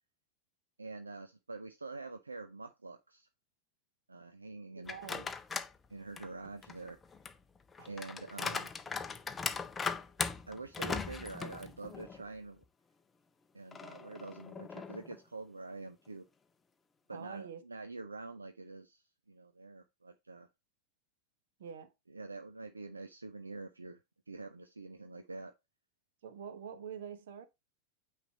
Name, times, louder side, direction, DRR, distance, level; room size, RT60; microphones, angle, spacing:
voice 1, 0.8-3.3 4.1-5.0 5.9-7.0 7.8-8.7 10.5-12.6 13.5-16.2 17.1-20.5 22.1-24.0 24.3-25.5, right 3 dB, 80° right, 0.5 m, -46 dB
voice 2, 4.7-5.3 7.8-7.9 17.1-17.6 21.6-21.9 26.2-27.4, right 7 dB, 60° right, 1.0 m, -46 dB
sound 1, 4.9-5.8 6.2-12.3 12.6-12.7 13.7-15.2, left 5 dB, 15° left, 0.6 m, -39 dB
8.9 x 3.3 x 4.1 m
figure-of-eight pair, 90°, 0 cm